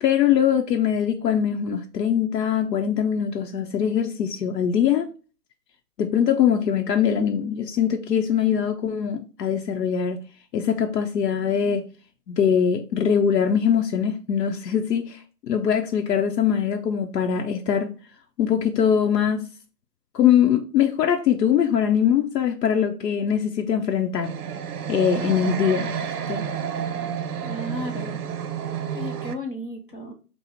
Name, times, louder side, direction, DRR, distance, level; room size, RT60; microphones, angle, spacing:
voice 1, 0.0-5.1 6.0-10.2 10.5-11.8 12.3-17.9 18.4-19.5 20.1-24.3 24.9-26.4, left 8 dB, 90° left, 0.7 m, -22 dB
sound 1, 24.2-29.4, right 8 dB, 65° right, 0.6 m, -30 dB
voice 2, 27.4-28.2 28.9-30.1, left 1 dB, 35° left, 0.7 m, -34 dB
4.0 x 2.0 x 4.2 m
hypercardioid pair, 180°, 48 cm